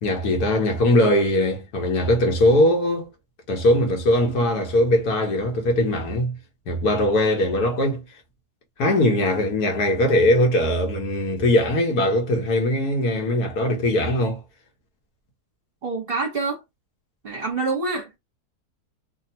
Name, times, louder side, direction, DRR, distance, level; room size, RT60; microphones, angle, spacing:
voice 1, 0.0-3.1 3.5-6.4 6.7-8.0 8.8-14.4, left 1 dB, 70° left, 1.6 m, -20 dB
voice 2, 15.8-16.6 17.2-18.2, right 3 dB, 40° right, 1.1 m, -26 dB
3.4 x 2.3 x 2.7 m
omnidirectional pair, 1.7 m